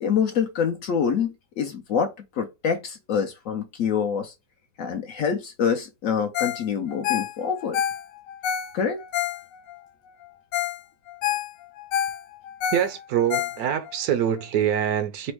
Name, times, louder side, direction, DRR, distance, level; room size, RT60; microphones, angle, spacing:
voice 1, 0.0-4.3 4.8-7.8 8.7-9.0, left 7 dB, 65° left, 0.8 m, -26 dB
Ringtone, 6.3-6.6 6.9-9.8 10.2-10.3 10.5-10.8 11.1-14.0 14.4-14.5, left 10 dB, 90° left, 1.2 m, -28 dB
voice 2, 12.7-15.3, right 9 dB, 70° right, 1.0 m, -24 dB
4.3 x 2.1 x 4.5 m
omnidirectional pair, 1.8 m